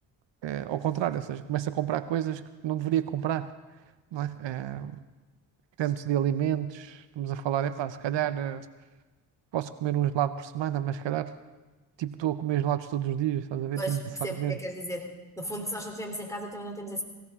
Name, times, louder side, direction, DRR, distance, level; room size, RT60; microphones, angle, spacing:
voice 1, 0.4-3.5 4.1-5.0 5.8-8.7 9.5-11.3 12.0-14.6, right 11 dB, 70° right, 12 dB, 0.7 m, -29 dB
voice 2, 13.8-15.1 15.4-17.0, equal, 5° left, 2 dB, 3.3 m, -35 dB
19.0 x 17.5 x 3.6 m, 1.2 s
cardioid pair, 70°, 45 cm